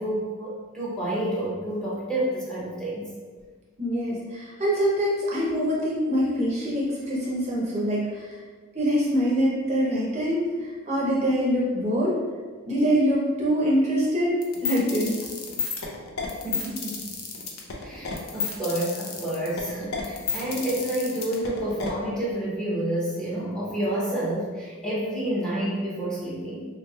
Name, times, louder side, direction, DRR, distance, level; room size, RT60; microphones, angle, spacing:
voice 1, 0.0-3.0 16.4-17.0 17.8-26.7, right 1 dB, 5° left, -8 dB, 0.7 m, -29 dB
voice 2, 3.8-8.4 8.7-12.2 12.7-15.2, equal, 30° right, -5 dB, 0.6 m, -24 dB
sound 1, 14.4-21.9, left 6 dB, 65° left, 0.5 m, -31 dB
3.4 x 3.1 x 2.3 m, 1.5 s
head